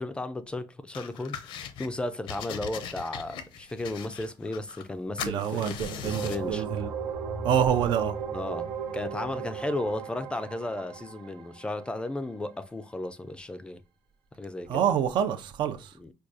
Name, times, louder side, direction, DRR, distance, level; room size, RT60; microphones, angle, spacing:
voice 1, 0.0-6.6 8.3-13.8 14.4-14.8 16.0-16.1, left 2 dB, 10° left, 0.3 m, -34 dB
sound 1, 0.9-1.9 2.3-4.9 5.2-6.5, left 8 dB, 80° left, 0.6 m, -40 dB
voice 2, 5.2-6.9 7.4-8.2 14.7-15.9, right 9 dB, 70° right, 0.5 m, -27 dB
sound 2, 6.0-11.7, right 6 dB, 85° right, 0.9 m, -35 dB
4.7 x 2.3 x 2.5 m
cardioid pair, 140°, 8 cm